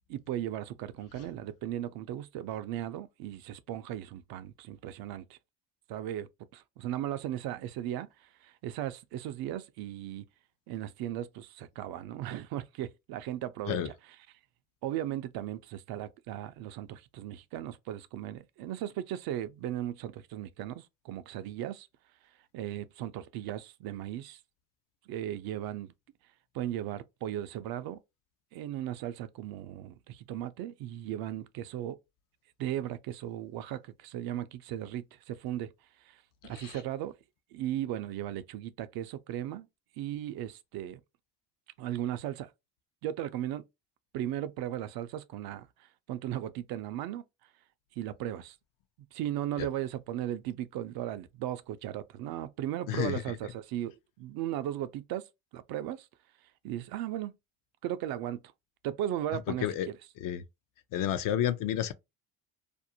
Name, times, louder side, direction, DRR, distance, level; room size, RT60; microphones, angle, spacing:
voice 1, 0.1-5.4 5.9-10.2 10.7-13.9 14.8-21.9 22.5-24.4 25.1-25.9 26.5-28.0 28.5-32.0 32.6-35.7 36.0-37.1 37.5-39.7 40.0-41.0 41.8-42.5 43.0-43.6 44.1-47.2 48.0-48.6 49.1-53.9 54.2-56.1 56.6-57.3 57.8-58.4 58.8-59.9, right 12 dB, 65° right, 0.5 m, -37 dB
voice 2, 36.4-36.8 49.6-49.7 52.9-53.2 59.3-59.9 60.2-60.4 60.9-61.9, left 11 dB, 55° left, 0.5 m, -31 dB
2.5 x 2.0 x 2.7 m
cardioid pair, 105°, 40 cm